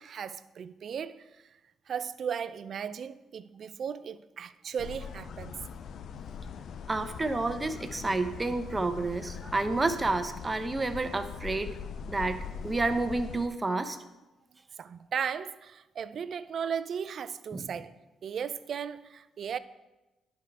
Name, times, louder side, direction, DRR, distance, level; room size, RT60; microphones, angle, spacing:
voice 1, 0.0-1.4 1.9-5.6 14.8-17.9 18.2-19.6, right 7 dB, 55° right, 0.4 m, -36 dB
sound 1, 4.8-13.5, left 6 dB, 65° left, 0.4 m, -41 dB
voice 2, 6.9-11.8 12.1-14.0 17.5-17.7, right 3 dB, 20° right, 0.7 m, -30 dB
11.0 x 4.7 x 4.7 m
cardioid pair, 90°, 0 cm